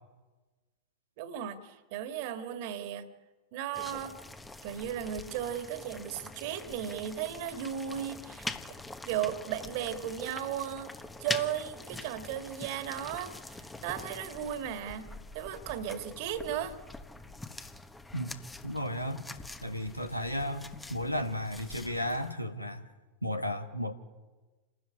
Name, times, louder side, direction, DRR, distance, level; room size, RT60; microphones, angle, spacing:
voice 1, 1.2-3.1 3.5-4.2 4.6-8.5 9.0-10.9 11.2-13.6 13.8-16.8, right 10 dB, 50° right, 9 dB, 2.1 m, -35 dB
sound 1, 3.7-22.3, left 2 dB, 10° left, 1.2 m, -44 dB
voice 2, 18.6-19.2 19.6-22.9 23.2-23.9, left 1 dB, 90° left, 7 dB, 1.8 m, -34 dB
28.0 x 13.0 x 9.7 m, 1.2 s
figure-of-eight pair, 90°, 0 cm